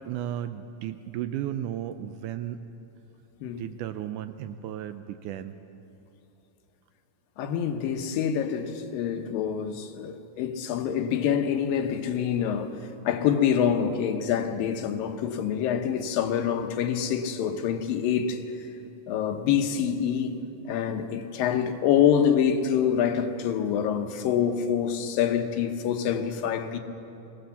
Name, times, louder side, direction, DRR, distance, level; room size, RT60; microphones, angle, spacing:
voice 1, 0.0-2.6 3.5-5.6, right 11 dB, 80° right, 1.9 m, -34 dB
voice 2, 7.4-18.4 19.1-20.4 20.7-26.8, left 8 dB, 85° left, 2.8 m, -26 dB
21.5 x 17.5 x 7.1 m
omnidirectional pair, 4.0 m